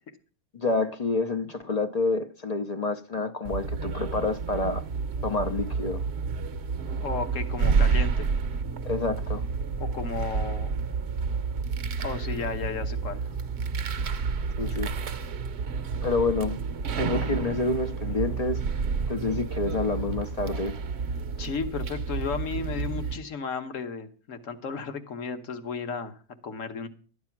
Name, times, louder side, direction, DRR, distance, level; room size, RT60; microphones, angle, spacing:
voice 1, 0.5-4.8 5.2-6.0 8.8-9.4 14.6-14.9 16.0-16.6 17.0-18.6 19.1-20.8, left 3 dB, 40° left, 0.6 m, -28 dB
sound 1, 3.4-23.2, right 5 dB, 55° right, 1.0 m, -30 dB
voice 2, 7.0-8.3 9.8-10.8 11.7-13.2 14.7-14.8 21.4-26.9, left 5 dB, 60° left, 1.5 m, -34 dB
13.0 x 9.6 x 5.9 m
omnidirectional pair, 1.6 m